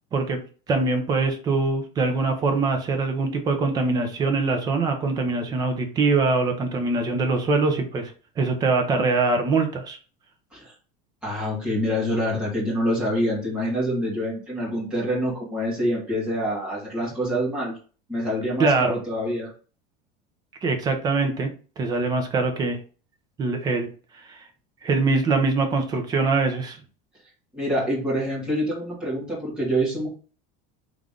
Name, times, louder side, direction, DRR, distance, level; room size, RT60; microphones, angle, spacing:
voice 1, 0.7-10.0 18.6-19.0 20.6-21.5 21.8-22.8 23.4-23.9 24.3-24.4 24.8-26.8, right 3 dB, 20° right, 5 dB, 0.7 m, -23 dB
voice 2, 11.2-17.7 18.1-19.5 27.5-30.1, equal, 5° right, -8 dB, 2.1 m, -26 dB
3.7 x 3.4 x 3.7 m, 0.37 s
cardioid pair, 175°, 19 cm